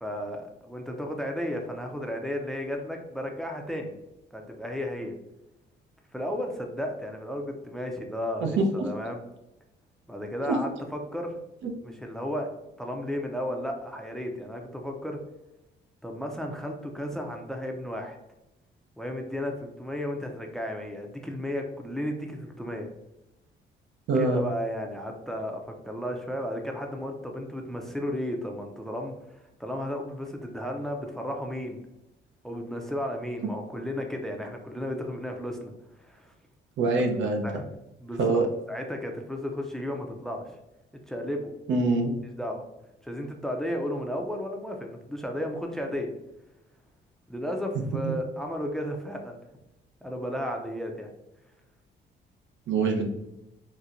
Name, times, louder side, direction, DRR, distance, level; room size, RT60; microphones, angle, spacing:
voice 1, 0.0-3.9 4.3-5.1 6.1-8.6 8.8-9.2 10.1-11.3 11.8-12.5 12.8-15.2 16.0-18.2 19.0-22.9 24.1-31.8 32.4-35.7 36.0-36.3 36.9-37.0 37.4-37.6 38.0-38.3 38.7-40.5 41.1-41.5 42.2-42.6 43.0-46.1 47.3-49.4 50.0-51.1, equal, ahead, 3 dB, 0.5 m, -33 dB
voice 2, 8.4-8.9 10.5-10.6 11.6-11.7 24.1-24.4 36.8-37.5 38.2-38.5 41.7-42.1 52.7-53.1, right 3 dB, 70° right, 3 dB, 0.7 m, -24 dB
4.2 x 2.2 x 2.5 m, 0.91 s
cardioid pair, 90°, 20 cm